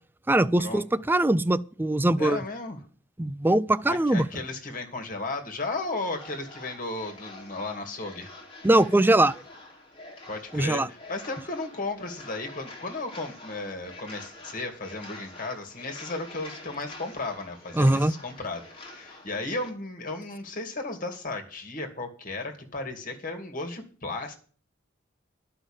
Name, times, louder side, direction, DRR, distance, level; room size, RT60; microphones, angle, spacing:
voice 1, 0.3-2.4 3.2-4.3 8.6-9.4 10.5-10.9 17.7-18.1, right 1 dB, 10° right, 0.4 m, -22 dB
voice 2, 2.2-2.8 3.8-8.3 10.3-24.4, left 2 dB, 45° left, 2.4 m, -35 dB
sound 1, 5.7-19.7, left 2 dB, 25° left, 2.7 m, -46 dB
11.0 x 5.7 x 8.9 m
head